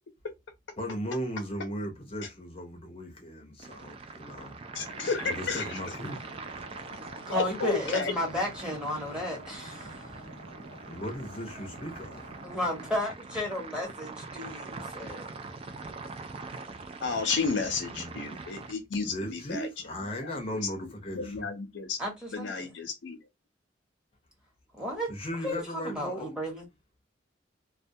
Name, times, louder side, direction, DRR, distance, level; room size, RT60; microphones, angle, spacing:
voice 1, 0.8-4.5 5.2-6.2 10.9-12.3 17.9-18.2 19.0-21.5 25.1-26.3, equal, 30° left, 0.6 m, -37 dB
sound 1, 3.6-18.7, right 4 dB, 30° right, 0.3 m, -43 dB
voice 2, 4.7-5.6 7.3-8.1 17.0-19.7 20.2-22.0 22.3-23.2, left 4 dB, 75° left, 0.6 m, -32 dB
Stream, 4.7-13.0, equal, 90° right, 0.9 m, -48 dB
voice 3, 7.3-10.1 12.4-15.3 22.0-22.7 24.8-25.1 25.4-26.7, left 1 dB, 5° right, 0.9 m, -33 dB
2.2 x 2.2 x 2.6 m
head